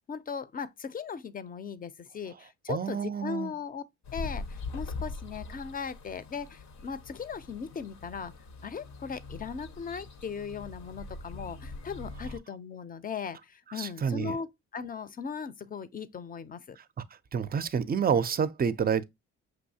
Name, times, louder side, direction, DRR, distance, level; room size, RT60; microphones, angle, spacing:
voice 1, 0.1-3.8 4.1-8.3 8.6-14.5 14.7-16.8, left 6 dB, 30° left, 0.5 m, -38 dB
voice 2, 2.7-3.5 13.7-14.3 17.3-19.0, right 7 dB, 30° right, 0.5 m, -28 dB
sound 1, 4.0-12.4, left 3 dB, 65° left, 0.8 m, -42 dB
6.2 x 2.7 x 2.7 m
cardioid pair, 90°, 30 cm